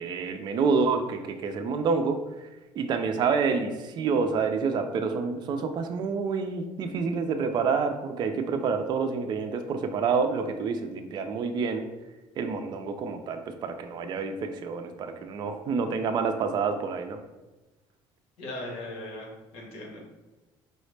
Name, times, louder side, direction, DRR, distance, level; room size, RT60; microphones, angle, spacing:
voice 1, 0.0-2.2 2.7-11.9 12.4-17.2, right 5 dB, 45° right, 6 dB, 0.4 m, -28 dB
voice 2, 18.4-19.3 19.5-20.0, left 1 dB, 80° left, 0 dB, 1.2 m, -38 dB
4.7 x 2.0 x 3.2 m, 1.1 s
cardioid pair, 115°, 10 cm